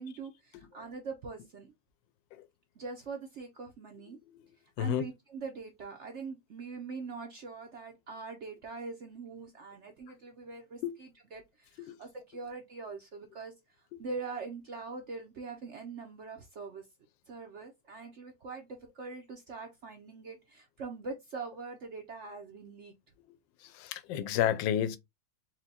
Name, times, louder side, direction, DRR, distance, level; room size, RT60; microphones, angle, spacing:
voice 1, 0.0-1.7 2.8-4.2 4.8-13.5 14.0-16.8 17.3-22.9, right 4 dB, 65° right, 0.7 m, -43 dB
voice 2, 23.6-25.0, left 10 dB, 80° left, 1.2 m, -31 dB
4.4 x 2.2 x 4.1 m
omnidirectional pair, 2.1 m